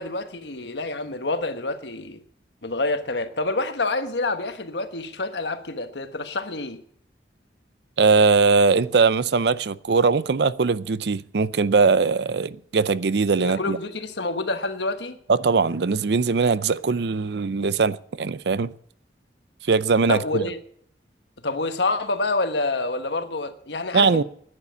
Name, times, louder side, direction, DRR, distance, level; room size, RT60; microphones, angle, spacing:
voice 1, 0.0-2.2 2.6-6.8 13.4-15.2 20.1-20.6 21.4-24.2, left 2 dB, 75° left, 1.3 m, -27 dB
voice 2, 8.0-13.8 15.3-18.7 19.7-20.5 23.9-24.2, right 4 dB, 70° right, 0.5 m, -20 dB
11.0 x 9.9 x 6.9 m
head